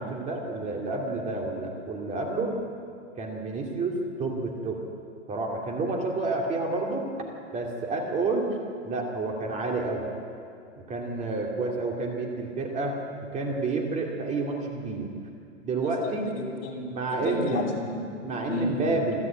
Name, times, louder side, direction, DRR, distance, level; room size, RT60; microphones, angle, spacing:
voice 1, 0.0-2.6 3.2-4.8 5.3-8.6 8.8-10.1 10.9-13.0 13.3-15.1 15.6-16.3 16.9-17.6 18.2-19.2, right 3 dB, 20° right, 0 dB, 2.6 m, -29 dB
voice 2, 15.8-16.9 17.1-18.1 18.5-19.0, left 2 dB, 55° left, -1 dB, 6.3 m, -32 dB
28.5 x 12.5 x 8.9 m, 2.5 s
hypercardioid pair, 155°, 38 cm